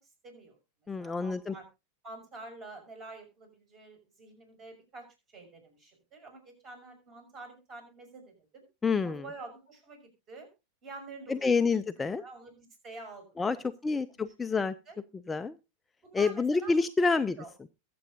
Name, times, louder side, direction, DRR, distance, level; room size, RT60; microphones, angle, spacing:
voice 1, 0.2-0.6 1.0-1.6 2.0-5.1 5.3-8.6 9.0-10.5 10.8-11.6 12.2-14.0 14.9-15.0 16.0-16.7 17.0-17.5, right 3 dB, 30° right, 5 dB, 5.9 m, -48 dB
voice 2, 0.9-1.5 8.8-9.2 11.3-12.2 13.4-13.6 13.8-14.7 15.3-15.6 16.1-17.4, left 4 dB, 15° left, 11 dB, 0.5 m, -28 dB
22.5 x 7.7 x 2.5 m, 0.28 s
figure-of-eight pair, 90°, 0 cm